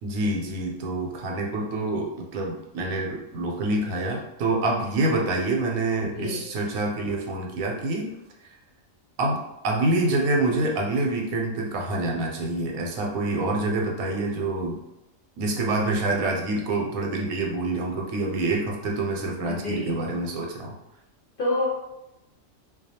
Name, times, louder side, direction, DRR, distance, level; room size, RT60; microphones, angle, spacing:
voice 1, 0.0-8.1 9.2-14.8 15.4-20.7, right 2 dB, 85° right, 0 dB, 1.0 m, -26 dB
voice 2, 19.4-20.0 21.4-21.7, left 2 dB, 60° left, -5 dB, 0.5 m, -28 dB
2.3 x 2.2 x 2.7 m, 0.90 s
omnidirectional pair, 1.4 m